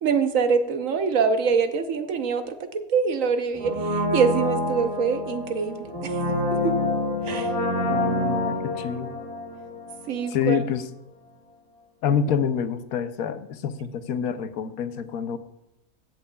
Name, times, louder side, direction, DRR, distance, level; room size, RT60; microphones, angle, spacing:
voice 1, 0.0-6.2 6.5-6.7 7.2-7.5 10.1-10.6, right 5 dB, 70° right, 8 dB, 1.2 m, -24 dB
Brass instrument, 3.6-10.4 10.7-10.8, left 1 dB, 40° right, 2.0 m, -27 dB
voice 2, 7.9-9.1 10.3-10.9 12.0-15.4, left 7 dB, 80° left, 11 dB, 1.1 m, -27 dB
16.5 x 7.5 x 2.3 m, 0.91 s
omnidirectional pair, 1.5 m